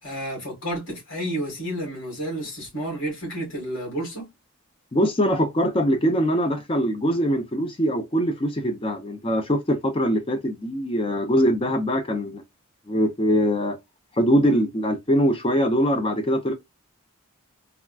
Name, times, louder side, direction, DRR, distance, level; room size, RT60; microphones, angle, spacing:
voice 1, 0.0-4.3, right 1 dB, 60° left, 1.9 m, -31 dB
voice 2, 4.9-12.4 12.9-13.8 14.2-16.5, equal, 25° left, 0.5 m, -22 dB
3.5 x 2.3 x 2.4 m
head